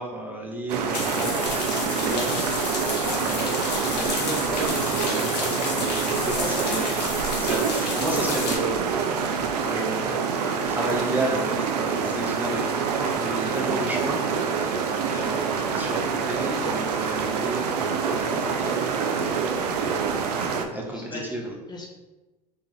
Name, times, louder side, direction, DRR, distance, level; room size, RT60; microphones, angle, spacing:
voice 1, 0.0-3.5 3.9-19.2 19.6-21.6, right 1 dB, 10° right, -2 dB, 0.9 m, -33 dB
sound 1, 0.7-20.7, right 5 dB, 75° right, 0.5 m, -26 dB
sound 2, 0.9-8.6, left 4 dB, 80° left, 0.8 m, -31 dB
voice 2, 3.0-3.6 15.0-15.7 20.9-21.4 21.7-21.9, left 1 dB, 20° left, -2 dB, 0.7 m, -41 dB
3.5 x 3.1 x 3.2 m, 1.1 s
hypercardioid pair, 80°, 21 cm